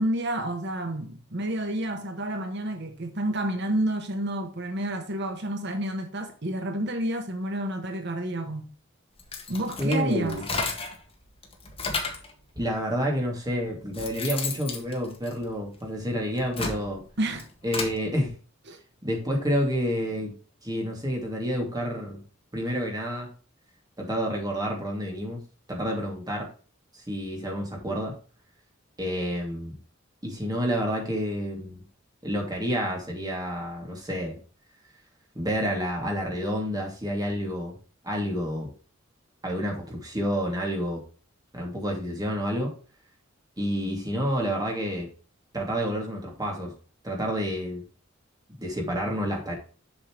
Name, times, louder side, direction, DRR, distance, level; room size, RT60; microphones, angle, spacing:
voice 1, 0.0-8.7 9.5-10.4 17.2-17.5 18.7-18.8, right 1 dB, 60° right, 1.2 m, -30 dB
sound 1, 9.2-11.0 11.4-12.3 13.1-13.2 13.7-15.8 16.3-18.0, left 4 dB, 30° left, 1.7 m, -33 dB
voice 2, 9.8-10.4 12.6-17.0 17.6-18.3 19.0-20.3 20.6-22.2 22.5-23.3 24.0-25.4 25.7-26.5 26.9-28.1 29.0-29.7 30.2-31.8 32.2-34.4 35.3-37.8 38.0-38.7 39.4-41.0 41.5-42.7 43.6-45.1 45.5-46.7 47.0-47.8 48.6-49.5, equal, 20° right, 2.7 m, -29 dB
7.2 x 6.5 x 3.2 m
head